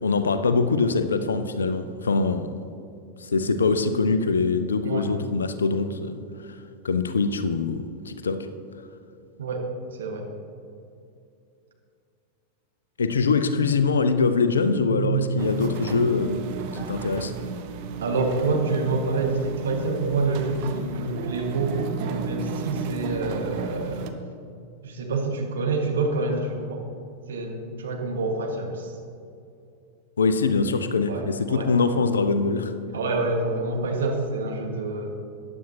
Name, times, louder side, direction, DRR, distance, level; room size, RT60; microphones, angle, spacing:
voice 1, 0.0-2.5 3.2-6.2 6.4-6.6 6.8-8.5 13.0-16.4 16.7-17.3 30.2-32.7, left 4 dB, 70° left, 11 dB, 0.6 m, -23 dB
voice 2, 10.0-10.3 14.9-15.6 18.0-24.1 24.8-26.8 27.3-28.9 31.1-31.7 32.9-35.1, right 3 dB, 65° right, 1 dB, 1.7 m, -27 dB
sound 1, 15.4-24.1, right 5 dB, 45° right, 0.8 m, -34 dB
14.5 x 10.0 x 2.9 m, 2.5 s
figure-of-eight pair, 90°, 0 cm